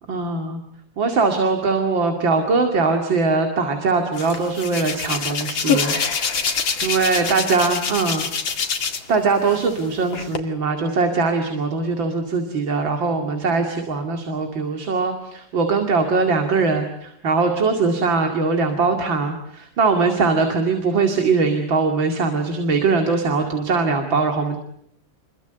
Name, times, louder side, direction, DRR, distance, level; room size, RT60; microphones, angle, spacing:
voice 1, 0.1-0.6 1.0-6.0 6.5-8.3 9.1-24.6, right 4 dB, 80° right, 4 dB, 3.1 m, -21 dB
Hands, 4.2-9.2 9.5-10.4, left 6 dB, 90° left, 2.9 m, -25 dB
29.0 x 23.5 x 8.0 m, 0.71 s
omnidirectional pair, 2.1 m